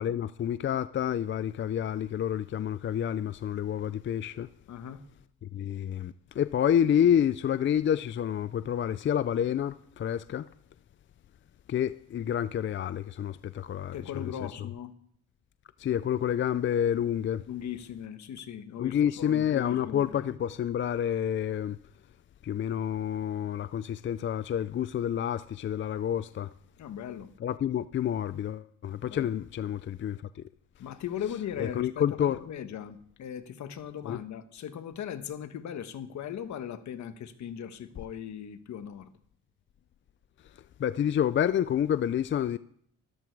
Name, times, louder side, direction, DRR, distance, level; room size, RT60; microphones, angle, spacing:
voice 1, 0.0-4.5 5.5-10.5 11.7-14.7 15.8-17.4 18.8-21.8 22.4-26.5 27.4-30.2 31.6-32.5 34.0-34.2 40.8-42.6, left 9 dB, 40° left, 0.4 m, -29 dB
voice 2, 4.7-5.0 13.9-14.9 17.5-20.1 26.8-27.3 29.0-29.3 30.8-39.1, left 9 dB, 70° left, 1.3 m, -38 dB
13.5 x 12.5 x 4.7 m
cardioid pair, 90°, 30 cm